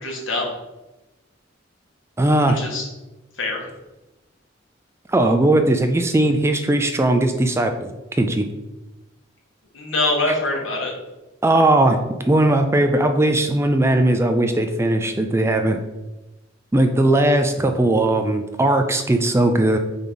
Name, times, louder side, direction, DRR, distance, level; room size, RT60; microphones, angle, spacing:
voice 1, 0.0-0.5 2.5-2.9 3.4-3.6 9.7-10.9, left 2 dB, 80° left, -1 dB, 1.6 m, -23 dB
voice 2, 2.2-2.6 5.1-7.9 8.2-8.5 11.4-12.0 12.3-15.8 16.7-19.8, right 1 dB, 15° right, 6 dB, 0.4 m, -18 dB
4.5 x 4.1 x 5.2 m, 1.1 s
head